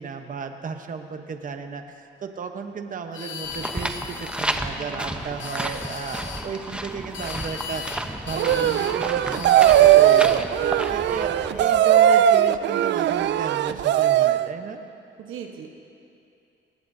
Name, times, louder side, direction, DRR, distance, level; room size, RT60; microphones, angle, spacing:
voice 1, 0.0-10.5 10.9-14.8, right 5 dB, 40° right, 6 dB, 1.0 m, -34 dB
sound 1, 3.1-4.6 5.3-6.5 7.1-8.0 8.3-9.0 9.3-10.4, left 6 dB, 75° left, 1.1 m, -37 dB
sound 2, 3.4-11.8, right 1 dB, 5° right, 0.8 m, -32 dB
voice 2, 4.8-5.2 11.3-11.4 15.2-15.8, right 8 dB, 85° right, 3 dB, 1.2 m, -39 dB
sound 3, 8.3-14.5, right 11 dB, 65° right, 0.4 m, -18 dB
20.0 x 18.0 x 2.7 m, 2.6 s
cardioid pair, 90°, 20 cm